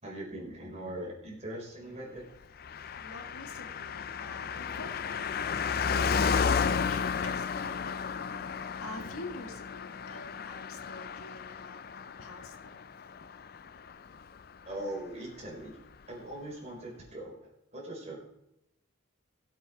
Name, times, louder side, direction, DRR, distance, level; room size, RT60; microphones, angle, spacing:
voice 1, 0.0-2.2 14.7-15.8 16.1-18.2, right 1 dB, 30° right, -2 dB, 4.1 m, -41 dB
Car passing by, 2.6-14.4 14.7-14.8, left 6 dB, 45° left, 0.4 m, -33 dB
voice 2, 3.0-12.8, left 2 dB, 90° left, 4 dB, 1.9 m, -47 dB
17.5 x 7.9 x 4.8 m, 0.87 s
head